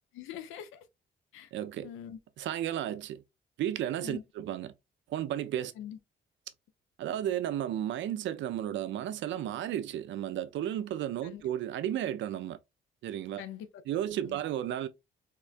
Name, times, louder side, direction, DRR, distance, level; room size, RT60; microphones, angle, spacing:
voice 1, 0.2-0.8 1.3-1.5 1.8-2.2 4.0-4.2 5.8-6.0 11.2-11.4 13.4-13.8 14.3-14.4, left 10 dB, 85° left, 0.5 m, -43 dB
voice 2, 1.5-1.9 2.4-3.2 3.6-4.7 5.1-5.7 7.0-12.6 13.0-13.4 13.9-14.9, right 11 dB, 70° right, 0.4 m, -33 dB
3.6 x 2.2 x 2.4 m
cardioid pair, 90°, 20 cm